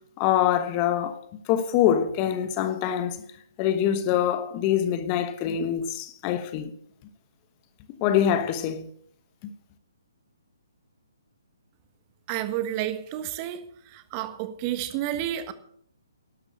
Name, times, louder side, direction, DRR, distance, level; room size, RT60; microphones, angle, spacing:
voice 1, 0.2-1.2 1.5-3.2 3.6-6.7 8.0-8.9 9.4-9.5, left 10 dB, 30° left, 1.1 m, -24 dB
voice 2, 12.3-13.7 13.9-15.5, right 12 dB, 30° right, 1.4 m, -30 dB
12.0 x 11.5 x 6.5 m
figure-of-eight pair, 135°, 2 cm